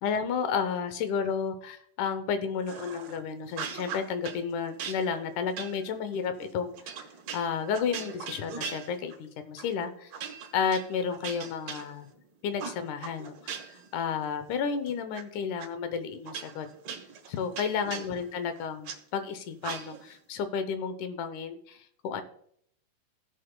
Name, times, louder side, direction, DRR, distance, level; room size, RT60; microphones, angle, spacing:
voice 1, 0.0-6.9 7.3-10.1 10.5-12.1 12.4-16.7 17.3-22.2, left 6 dB, 85° left, 9 dB, 2.3 m, -32 dB
sound 1, 2.7-3.2 3.5-4.4 4.8-9.3 9.6-9.8 10.1-12.2 12.6-13.9 14.2-15.2 15.6-15.7 16.3-19.0 19.6-20.2, right 7 dB, 65° right, 2.0 m, -40 dB
17.0 x 6.7 x 2.2 m, 0.66 s
omnidirectional pair, 3.4 m